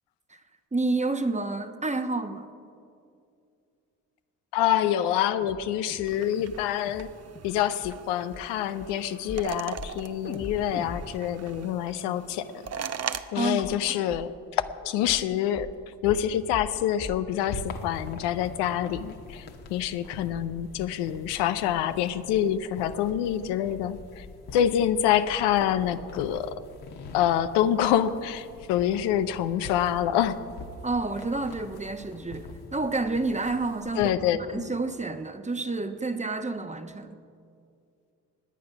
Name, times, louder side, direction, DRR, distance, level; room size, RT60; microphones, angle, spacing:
voice 1, 0.7-2.5 13.4-13.6 30.8-34.1 34.5-37.2, right 3 dB, 15° right, 9 dB, 1.0 m, -29 dB
voice 2, 4.5-7.1 7.4-12.5 13.3-15.7 16.0-24.2 24.5-26.5 27.1-30.4 34.0-34.7, left 10 dB, 80° left, 11 dB, 0.6 m, -26 dB
sound 1, 5.4-5.6 5.9-6.1 6.4-6.6 6.9-7.1 7.4-7.6 7.8-8.0 8.3-8.4 8.8-8.9 9.3-9.5 9.8-10.0 10.2-12.3 12.6-12.7 13.1-13.2 13.6-13.8 14.1-14.2 14.6-14.7 15.1-15.2 15.5-15.7 16.0-16.2 16.5-16.7 17.0-17.2 17.5-17.7 18.0-18.1 18.4-18.5 18.9-19.0, left 3 dB, 30° left, 1.3 m, -41 dB
sound 2, 6.1-13.2, right 7 dB, 40° right, 0.7 m, -40 dB
sound 3, 17.4-34.1, left 3 dB, 65° left, 1.4 m, -44 dB
17.5 x 9.5 x 5.8 m, 2.4 s
hypercardioid pair, 45°, 41 cm